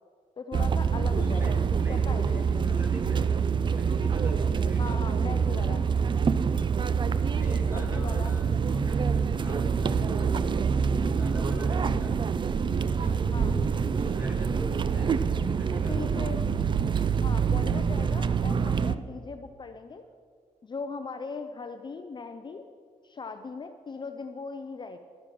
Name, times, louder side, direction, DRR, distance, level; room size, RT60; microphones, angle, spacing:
voice 1, 0.4-2.4 4.8-5.8 7.7-8.4 13.3-13.5 15.8-16.4 17.2-20.0 20.6-22.7 23.0-25.0, left 4 dB, 35° left, 7 dB, 0.5 m, -39 dB
ambience flee market between rows, 0.5-19.0, right 6 dB, 35° right, 0.4 m, -26 dB
voice 2, 0.9-5.4 6.5-6.8 7.1-10.5 10.9-12.1 12.5-16.0 17.6-17.9, equal, 15° right, -1 dB, 2.6 m, -42 dB
11.5 x 9.6 x 6.0 m, 2.1 s
wide cardioid pair, 130°, 14 cm